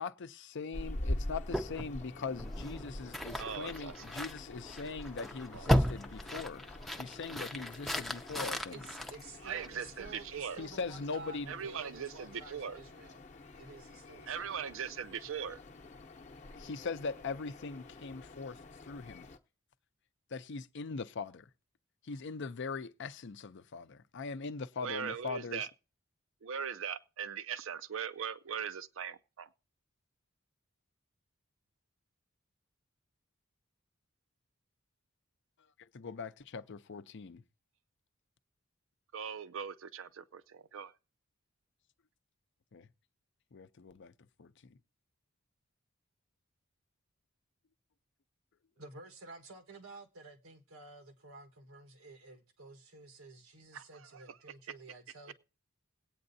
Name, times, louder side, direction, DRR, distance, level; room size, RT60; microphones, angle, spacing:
voice 1, 0.0-6.6 7.0-8.8 10.6-11.5 16.5-18.6 18.9-19.3 20.3-21.5 22.0-25.7 35.8-37.4 42.7-42.9 43.5-44.1 44.4-44.5, left 4 dB, 60° left, 0.6 m, -41 dB
sound 1, 0.7-19.4, left 1 dB, 35° left, 0.8 m, -46 dB
sound 2, 1.5-10.0, equal, ahead, 0.5 m, -36 dB
voice 2, 3.4-4.0 5.5-5.7 9.4-10.6 11.5-12.8 14.3-15.6 24.8-25.7 26.4-29.5 39.1-40.9 53.7-54.1, right 7 dB, 70° right, 0.5 m, -40 dB
voice 3, 8.7-13.2 13.5-14.7 48.8-55.3, right 3 dB, 90° right, 1.4 m, -52 dB
20.5 x 8.8 x 2.7 m
head